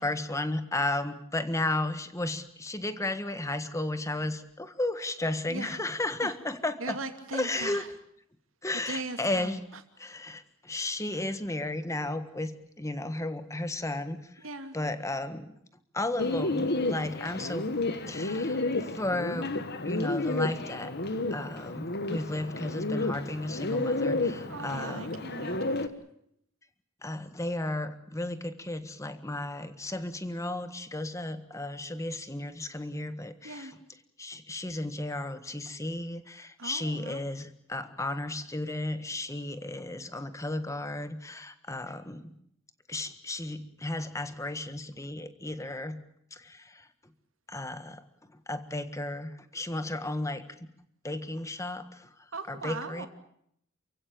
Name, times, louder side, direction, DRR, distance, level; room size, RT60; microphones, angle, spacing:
voice 1, 0.0-7.0 7.3-7.8 8.6-9.6 10.0-14.4 14.7-15.5 15.9-17.7 18.1-19.5 19.8-21.0 21.3-25.1 27.0-33.7 34.2-42.3 42.9-46.0 46.3-46.9 47.5-48.0 48.5-50.7 51.0-52.1 52.5-53.1, left 2 dB, 15° left, 10 dB, 1.5 m, -34 dB
voice 2, 5.5-5.8 6.2-6.3 6.8-7.9 8.7-9.6 14.4-14.7 24.5-25.9 33.4-33.7 36.6-37.3 52.3-53.1, right 3 dB, 85° right, 6 dB, 2.7 m, -39 dB
Bird, 16.2-25.9, left 2 dB, 55° left, 1.6 m, -31 dB
29.0 x 16.0 x 8.7 m, 0.72 s
head